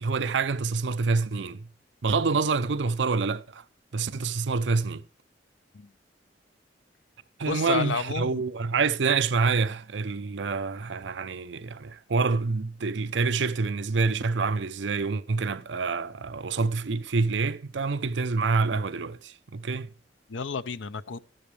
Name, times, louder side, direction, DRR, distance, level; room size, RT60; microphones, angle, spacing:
voice 1, 0.0-1.7 2.0-3.6 3.9-5.0 7.4-19.9, right 4 dB, 70° right, 0.6 m, -27 dB
voice 2, 7.5-8.4 20.3-21.3, left 5 dB, 85° left, 0.6 m, -31 dB
13.0 x 12.0 x 3.3 m
head